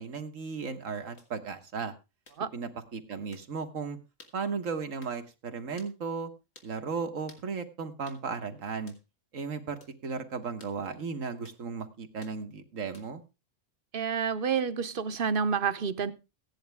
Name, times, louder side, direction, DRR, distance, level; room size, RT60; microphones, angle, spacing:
voice 1, 0.0-1.9 2.5-4.0 4.3-6.3 6.6-8.9 9.3-13.2, right 5 dB, 85° right, 1.8 m, -35 dB
sound 1, 1.2-1.3 2.2-2.4 3.3-3.5 4.2-4.4 5.0-5.2 5.8-6.0 6.5-6.7 7.3-7.5 8.1-8.2 8.9-9.0 9.8-10.0 10.6-10.8 11.4-11.6 12.2-12.4 12.9-13.2, left 2 dB, 85° left, 2.9 m, -55 dB
voice 2, 13.9-16.1, right 6 dB, 50° right, 0.9 m, -29 dB
15.5 x 10.0 x 3.5 m
omnidirectional pair, 1.3 m